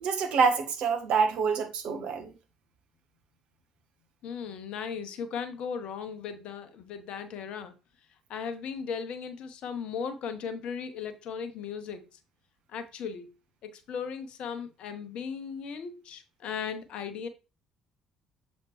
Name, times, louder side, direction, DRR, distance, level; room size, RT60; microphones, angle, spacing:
voice 1, 0.0-2.3, right 5 dB, 55° right, 1.0 m, -26 dB
voice 2, 4.2-7.7 8.3-12.2 12.7-13.3 13.6-17.3, left 6 dB, 55° left, 0.9 m, -37 dB
7.3 x 4.1 x 3.1 m
figure-of-eight pair, 50°, 2 cm